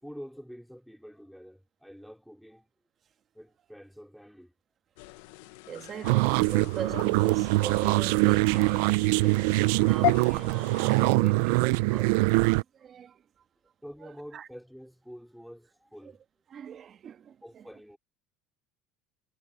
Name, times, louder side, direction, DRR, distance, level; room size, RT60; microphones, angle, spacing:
voice 1, 0.0-2.7 3.3-4.5 13.8-16.2 17.4-18.0, equal, ahead, 4.4 m, -47 dB
sound 1, 5.0-11.1, left 22 dB, 80° left, 0.9 m, -37 dB
voice 2, 5.7-13.2 14.3-14.5 16.5-17.6, right 8 dB, 40° right, 1.6 m, -41 dB
sound 2, 6.0-12.6, right 23 dB, 80° right, 0.5 m, -23 dB
supercardioid pair, 105°, 0 cm